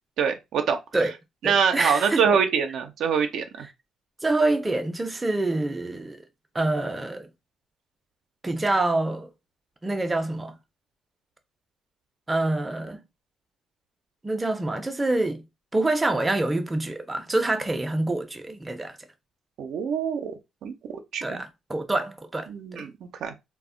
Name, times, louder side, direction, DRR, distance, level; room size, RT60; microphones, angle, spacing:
voice 1, 0.2-0.8 1.4-3.7 19.6-20.3 20.6-21.4 22.5-23.3, right 7 dB, 75° right, 0.4 m, -25 dB
voice 2, 1.4-2.4 4.2-6.2 6.5-7.3 8.4-9.3 9.8-10.6 12.3-13.0 14.2-15.4 15.7-19.0 21.2-22.8, right 2 dB, 20° right, 0.5 m, -26 dB
2.1 x 2.0 x 3.6 m
cardioid pair, 90°, 0 cm